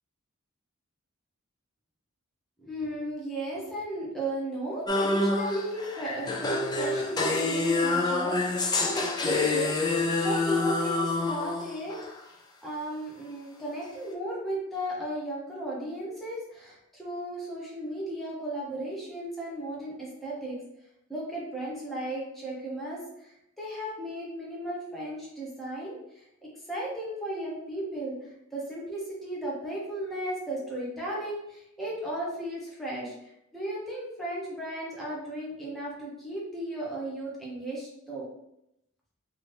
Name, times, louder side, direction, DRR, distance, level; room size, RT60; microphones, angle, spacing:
voice 1, 2.6-12.0 12.6-20.6 21.1-26.2 26.7-38.3, right 1 dB, ahead, -6 dB, 0.9 m, -35 dB
sound 1, 4.9-12.1, left 3 dB, 20° left, 0.3 m, -27 dB
2.9 x 2.6 x 3.3 m, 0.80 s
head